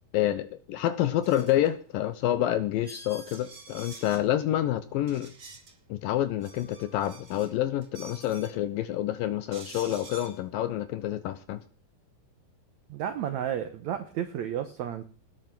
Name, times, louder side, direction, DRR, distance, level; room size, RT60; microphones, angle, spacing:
voice 1, 0.1-5.3 5.9-11.6, left 12 dB, 75° left, 12 dB, 2.3 m, -28 dB
sound 1, 1.2-1.7 2.2-2.3 2.8-4.2 5.1-5.7 6.2-7.5 7.8-8.6 9.5-10.4, right 3 dB, 30° right, 2.6 m, -47 dB
voice 2, 12.9-15.0, right 10 dB, 70° right, 8 dB, 1.8 m, -32 dB
19.0 x 9.2 x 6.1 m, 0.41 s
omnidirectional pair, 4.4 m